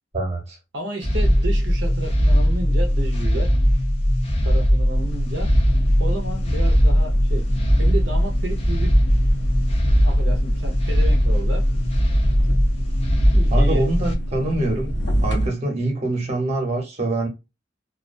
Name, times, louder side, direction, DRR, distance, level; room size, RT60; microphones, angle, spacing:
voice 1, 0.1-0.6 13.5-14.9 15.2-17.3, right 2 dB, 35° right, 0.9 m, -24 dB
voice 2, 0.7-3.5 4.4-5.5 6.0-7.5 7.8-9.0 9.8-11.7 13.3-13.9, right 2 dB, 70° right, 0.7 m, -32 dB
sound 1, 1.0-14.1, equal, 35° left, 0.6 m, -19 dB
sound 2, 4.9-15.5, equal, 75° left, 0.8 m, -28 dB
2.4 x 2.2 x 2.5 m
head